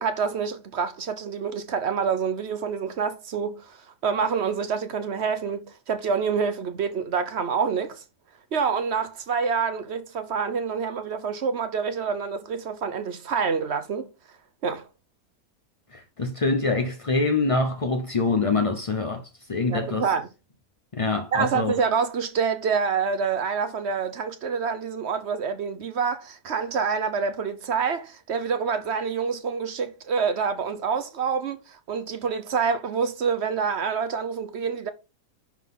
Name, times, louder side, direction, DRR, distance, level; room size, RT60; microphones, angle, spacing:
voice 1, 0.0-8.0 8.5-14.1 14.6-14.9 19.7-20.3 21.3-34.9, right 6 dB, 50° right, 0.9 m, -27 dB
voice 2, 15.9-19.2 19.5-20.1 20.9-21.7, left 3 dB, 35° left, 0.5 m, -25 dB
11.0 x 3.9 x 3.7 m
omnidirectional pair, 1.8 m